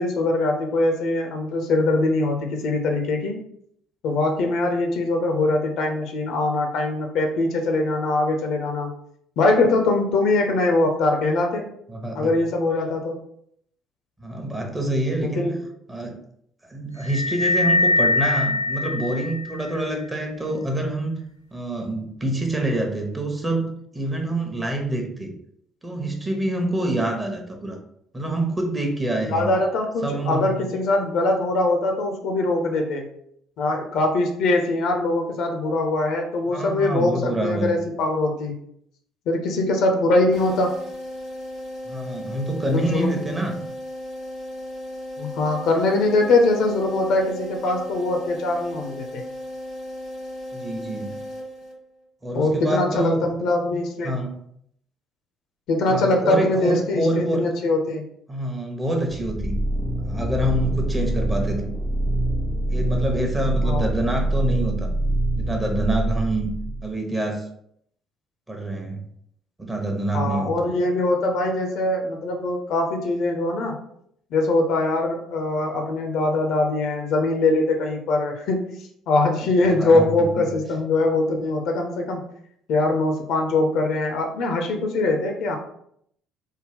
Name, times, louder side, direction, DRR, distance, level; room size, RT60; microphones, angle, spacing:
voice 1, 0.0-3.4 4.0-8.9 9.4-11.6 12.1-13.2 15.2-15.6 29.3-33.1 33.6-38.6 39.3-40.8 42.7-43.2 45.2-49.2 52.3-54.1 55.7-58.0 63.6-63.8 70.1-73.8 74.3-82.2 82.7-85.6, left 2 dB, 55° left, 3 dB, 0.5 m, -22 dB
voice 2, 11.9-12.4 14.2-15.4 15.9-16.2 16.7-21.1 21.5-23.7 23.9-25.3 25.8-27.8 28.1-29.5 30.0-30.6 36.5-37.8 41.9-43.6 50.5-51.2 52.2-53.3 54.0-54.4 55.9-57.5 58.3-59.6 60.1-61.7 62.7-64.9 65.4-66.5 66.8-67.4 68.5-69.0 69.6-70.6 79.6-80.1 80.4-80.5, right 1 dB, 15° right, 2 dB, 0.9 m, -26 dB
sound 1, 17.0-19.7, left 2 dB, 85° right, 0.4 m, -22 dB
sound 2, 40.3-52.0, equal, 60° right, 1.3 m, -35 dB
sound 3, 59.1-66.9, right 1 dB, ahead, 0.4 m, -25 dB
3.5 x 2.2 x 3.4 m, 0.70 s
figure-of-eight pair, 50°, 0 cm